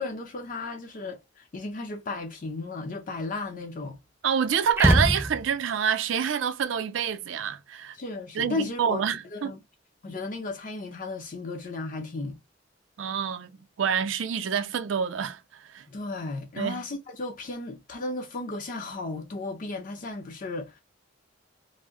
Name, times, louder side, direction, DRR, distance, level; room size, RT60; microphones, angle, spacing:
voice 1, 0.0-4.0 7.9-9.0 9.3-9.6 10.0-12.3 15.9-20.8, left 3 dB, 45° left, 0.6 m, -34 dB
voice 2, 4.2-8.0 8.3-9.6 13.0-13.5 13.8-15.8 16.6-16.8, right 7 dB, 75° right, 0.4 m, -27 dB
sound 1, 4.8-5.8, right 1 dB, 10° right, 0.5 m, -23 dB
2.5 x 2.0 x 3.5 m
head